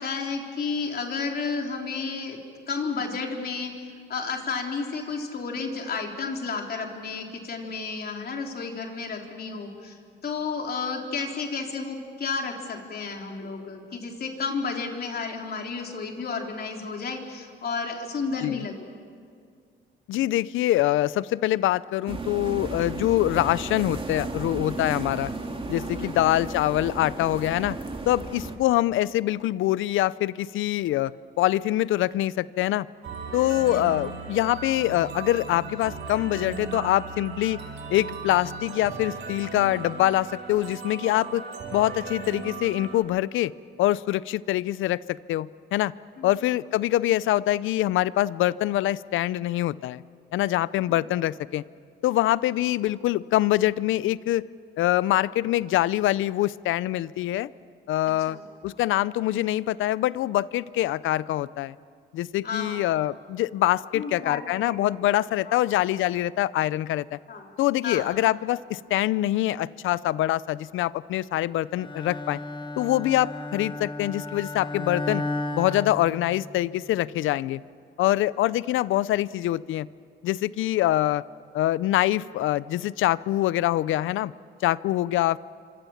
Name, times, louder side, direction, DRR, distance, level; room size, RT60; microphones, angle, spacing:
voice 1, 0.0-2.4 2.7-3.7 4.1-10.0 10.2-18.9 26.0-26.2 33.7-33.9 46.2-46.3 50.9-51.0 58.3-58.4 62.4-62.8 63.9-64.9 65.5-65.6 67.3-67.5 67.8-68.1, left 4 dB, 50° left, 2 dB, 3.8 m, -32 dB
voice 2, 20.1-25.3 25.7-27.8 28.1-31.1 31.4-32.9 33.3-37.6 37.9-41.4 41.7-43.5 43.8-45.9 46.2-50.0 50.3-51.6 52.0-54.5 54.8-57.5 57.9-61.8 62.1-67.2 67.6-72.4 72.8-75.2 75.5-77.6 78.0-79.9 80.2-81.2 81.5-84.3 84.6-85.4, left 14 dB, 85° left, 19 dB, 0.6 m, -24 dB
sound 1, 22.1-28.6, right 2 dB, 25° right, 2.9 m, -34 dB
sound 2, 33.0-43.0, right 5 dB, 65° right, 5.1 m, -37 dB
Bowed string instrument, 71.8-76.7, left 2 dB, 25° left, 1.3 m, -34 dB
27.5 x 25.5 x 7.3 m, 2.2 s
cardioid pair, 90°, 20 cm